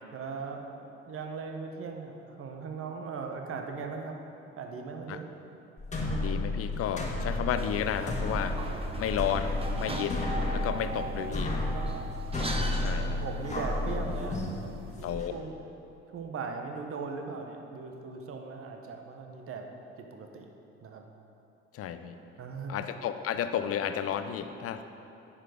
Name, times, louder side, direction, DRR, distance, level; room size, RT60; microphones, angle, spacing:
voice 1, 0.1-4.2 4.6-5.3 10.7-12.1 12.5-15.5 16.1-19.7 20.0-20.5 20.8-21.0 22.4-22.9, right 5 dB, 45° right, 3 dB, 1.0 m, -39 dB
sound 1, 5.8-15.3, left 2 dB, 25° left, 1.6 m, -32 dB
voice 2, 6.2-8.6 9.0-11.5 12.8-13.2 15.0-15.3 21.7-22.2 22.7-24.8, left 8 dB, 50° left, 9 dB, 0.6 m, -32 dB
sound 2, 7.6-15.0, right 2 dB, 20° right, 0.9 m, -39 dB
10.0 x 4.8 x 5.0 m, 3.0 s
hypercardioid pair, 65°, 30 cm